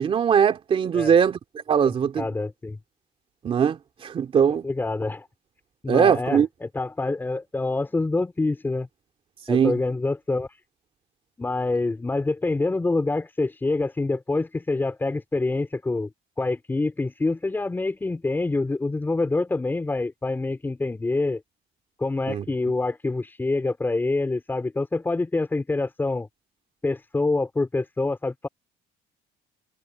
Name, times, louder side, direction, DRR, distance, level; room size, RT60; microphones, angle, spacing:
voice 1, 0.0-1.4 1.7-2.3 3.4-3.8 4.0-4.7 5.9-6.5 9.5-9.8 22.3-22.4, right 7 dB, 30° right, 2.9 m, -20 dB
voice 2, 2.2-2.8 4.5-5.3 5.8-8.9 9.5-10.6 11.4-16.1 16.4-21.4 22.0-26.3 26.8-28.5, left 3 dB, 10° left, 4.5 m, -26 dB
cardioid pair, 175°, 18 cm